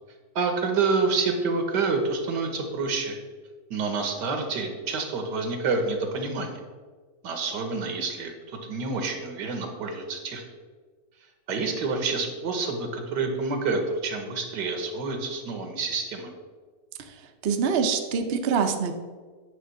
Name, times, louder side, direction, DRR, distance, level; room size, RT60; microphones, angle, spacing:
voice 1, 0.4-3.2 3.7-6.6 7.2-10.4 11.5-16.3, right 4 dB, 80° right, 4 dB, 1.7 m, -28 dB
voice 2, 17.4-19.0, right 6 dB, 55° right, 5 dB, 0.7 m, -25 dB
9.1 x 3.4 x 6.9 m, 1.5 s
omnidirectional pair, 1.8 m